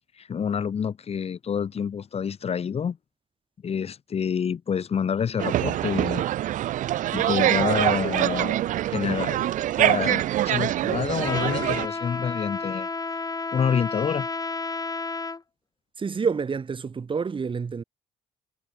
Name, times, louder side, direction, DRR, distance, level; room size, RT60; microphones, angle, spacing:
voice 1, 0.2-3.0 3.6-6.2 7.1-8.6 8.8-9.4 9.8-12.9 13.5-14.3, left 7 dB, 45° left, 3.1 m, -27 dB
sound 1, 5.4-11.9, right 13 dB, 70° right, 0.9 m, -24 dB
Trumpet, 11.2-15.4, left 4 dB, 25° left, 6.4 m, -31 dB
voice 2, 16.0-17.8, right 5 dB, 40° right, 4.4 m, -28 dB
supercardioid pair, 75°, 14 cm